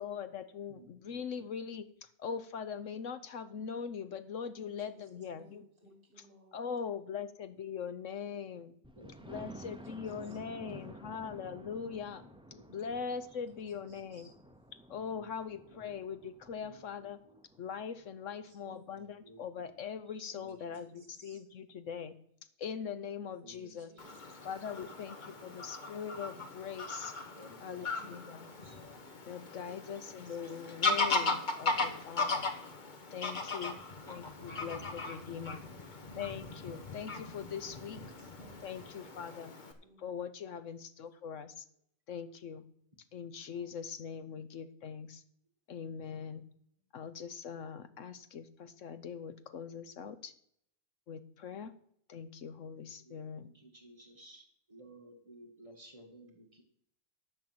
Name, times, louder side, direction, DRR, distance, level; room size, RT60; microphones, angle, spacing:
voice 1, 0.0-5.7 6.2-6.3 6.5-8.8 9.2-12.2 12.7-14.3 14.9-17.2 17.6-22.1 22.6-23.9 24.4-27.2 27.6-28.5 29.3-32.5 33.1-33.8 34.1-35.6 36.1-38.0 38.6-39.6 40.0-41.6 42.1-42.6 43.1-45.2 45.7-46.4 46.9-50.3 51.1-51.7 52.1-53.5, left 7 dB, 70° left, 12 dB, 1.1 m, -41 dB
voice 2, 0.7-1.5 9.0-9.3 12.2-12.9 15.1-16.0 16.6-17.4 18.9-19.4 20.2-20.8 23.4-24.2 24.7-24.8 25.2-25.5 27.3-28.8 31.0-31.2 31.8-32.3 34.0-34.9 53.0-56.6, equal, 25° right, 2 dB, 1.9 m, -57 dB
voice 3, 4.6-6.6 9.4-9.6 9.9-10.0 10.5-11.2 13.3-13.4 13.8-14.3 18.6-18.9 20.3-20.4 20.7-21.4 23.3-24.1 24.5-25.0 27.9-28.6 29.6-29.7 30.1-30.4 33.2-33.9 35.2-36.0 38.0-38.8 39.8-40.2, right 1 dB, 40° right, 3 dB, 2.7 m, -61 dB
Thunder, 8.8-18.6 19.1-19.2 19.6-19.7 20.0-20.1, right 1 dB, 5° right, 0.4 m, -52 dB
Fowl / Bird vocalization bird call bird song, 24.0-39.7, left 3 dB, 35° left, 1.3 m, -37 dB
11.0 x 5.9 x 7.7 m, 0.67 s
omnidirectional pair, 1.4 m